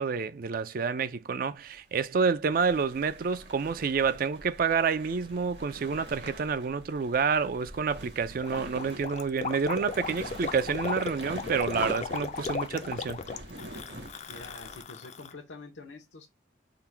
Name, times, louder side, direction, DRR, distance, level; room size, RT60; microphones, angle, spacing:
voice 1, 0.0-13.2, right 5 dB, 50° right, 0.4 m, -28 dB
sound 1, 0.8-0.9 1.7-14.8, right 1 dB, 65° right, 1.4 m, -44 dB
Gurgling, 8.4-15.3, left 5 dB, 40° left, 0.4 m, -36 dB
voice 2, 14.3-16.3, left 3 dB, 90° left, 0.8 m, -46 dB
3.8 x 2.1 x 4.4 m
head